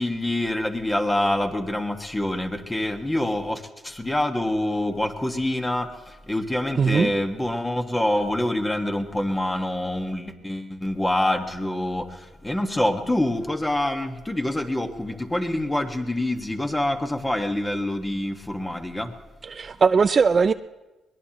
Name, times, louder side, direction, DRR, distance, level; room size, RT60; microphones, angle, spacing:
voice 1, 0.0-19.2, left 1 dB, 15° left, 5 dB, 1.6 m, -26 dB
voice 2, 6.8-7.1 19.5-20.5, right 5 dB, 40° right, 11 dB, 0.4 m, -19 dB
22.5 x 19.5 x 3.0 m, 1.1 s
cardioid pair, 90°, 0 cm